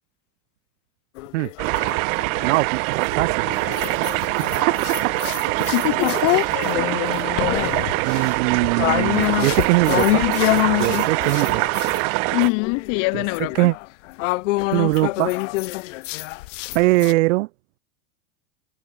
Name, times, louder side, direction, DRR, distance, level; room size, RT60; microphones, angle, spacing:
sound 1, 1.2-2.5 3.1-12.0 12.4-17.1, left 21 dB, 65° left, 0.8 m, -26 dB
sound 2, 1.6-12.5, right 40 dB or more, 50° right, 1.4 m, -24 dB
voice 1, 2.4-3.5 4.7-4.8 8.0-10.2 10.7-11.8 13.1-13.2 13.5-13.7 14.7-15.4 16.7-17.5, right 21 dB, 65° right, 1.0 m, -21 dB
voice 2, 5.6-6.3 6.5-6.9 12.3-13.7, left 32 dB, 50° left, 6.3 m, -24 dB
supercardioid pair, 145°, 40 cm